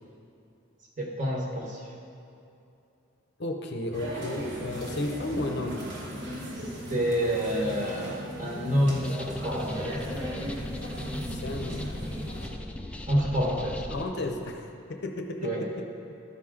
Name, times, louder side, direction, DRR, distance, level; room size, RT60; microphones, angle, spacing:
voice 1, 1.0-1.8 6.9-8.1 8.4-10.0 13.1-13.8 15.4-15.6, equal, 35° right, -2 dB, 1.3 m, -27 dB
voice 2, 3.4-5.8 11.3-11.9 13.9-15.9, left 2 dB, 55° left, 4 dB, 0.6 m, -33 dB
sound 1, 3.9-12.5, equal, 55° right, 1.5 m, -37 dB
sound 2, 8.9-14.1, left 1 dB, 5° left, 0.3 m, -38 dB
12.5 x 5.8 x 3.7 m, 2.6 s
head